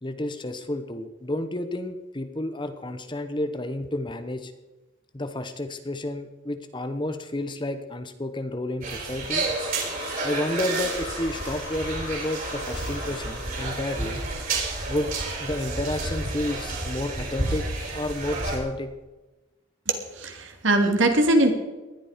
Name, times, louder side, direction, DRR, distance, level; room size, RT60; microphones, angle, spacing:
voice 1, 0.0-4.5 5.1-9.4 10.2-14.2 14.9-15.1 15.4-17.7 17.9-18.9, left 1 dB, 25° left, 9 dB, 1.0 m, -31 dB
sound 1, 8.8-18.6, right 2 dB, 45° right, 4.9 m, -30 dB
sound 2, 9.5-14.8, left 3 dB, 65° left, 2.9 m, -40 dB
voice 2, 19.9-21.5, right 1 dB, 65° right, 4 dB, 2.8 m, -21 dB
19.5 x 12.0 x 5.1 m, 1.1 s
head